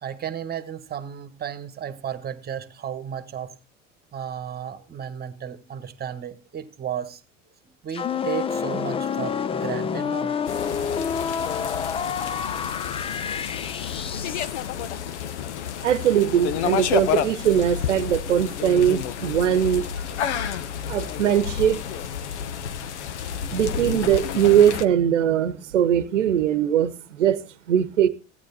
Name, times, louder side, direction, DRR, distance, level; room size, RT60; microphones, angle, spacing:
voice 1, 0.0-3.5 4.1-7.2 7.8-10.4, right 8 dB, 25° right, 1.4 m, -33 dB
sound 1, 7.9-14.6, left 6 dB, 15° left, 0.5 m, -28 dB
sound 2, 10.5-24.9, left 8 dB, 60° left, 1.0 m, -30 dB
voice 2, 15.8-19.8 20.9-21.8 23.5-26.9 27.2-27.4 27.7-28.1, right 10 dB, 70° right, 1.0 m, -20 dB
16.0 x 9.1 x 4.2 m
figure-of-eight pair, 70°, 38 cm